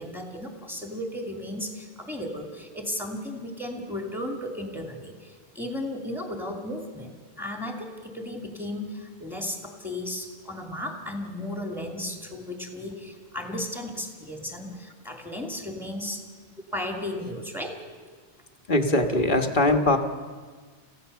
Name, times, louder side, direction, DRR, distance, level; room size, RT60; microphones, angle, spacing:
voice 1, 0.0-16.2 16.7-17.8, left 1 dB, ahead, 2 dB, 2.7 m, -35 dB
voice 2, 18.7-20.0, left 2 dB, 50° left, 5 dB, 1.6 m, -21 dB
27.0 x 15.5 x 6.9 m, 1.5 s
omnidirectional pair, 1.1 m